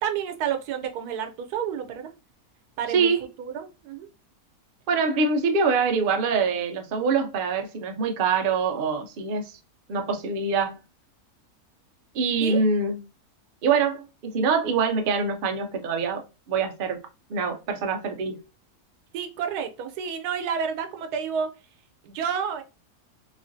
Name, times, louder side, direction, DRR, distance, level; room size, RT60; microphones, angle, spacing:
voice 1, 0.0-2.1 2.8-3.1 3.4-4.1 12.4-12.6 19.1-21.5 22.0-22.6, right 7 dB, 90° right, 1.2 m, -30 dB
voice 2, 4.9-9.5 9.9-10.8 12.1-13.0 13.6-17.0 17.3-18.4, right 5 dB, 70° right, 0.5 m, -24 dB
3.1 x 2.4 x 2.5 m
omnidirectional pair, 1.6 m